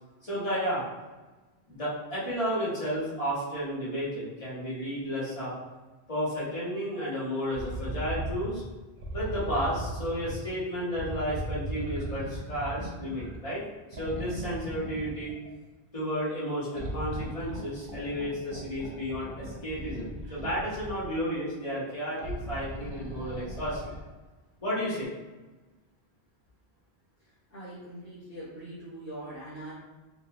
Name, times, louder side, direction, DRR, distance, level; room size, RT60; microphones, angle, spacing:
voice 1, 0.2-0.8 1.7-5.5 6.1-8.6 9.1-13.6 13.9-15.3 15.9-23.9 24.6-25.1, equal, 35° left, -9 dB, 1.5 m, -32 dB
sound 1, 7.5-8.5 9.0-10.5 10.9-13.5 13.9-15.5 16.7-21.2 22.1-24.1 25.0-25.1, right 1 dB, 55° right, 0.8 m, -38 dB
voice 2, 27.5-29.7, right 1 dB, 65° left, -9 dB, 1.1 m, -42 dB
3.3 x 3.2 x 2.9 m, 1.2 s
omnidirectional pair, 1.0 m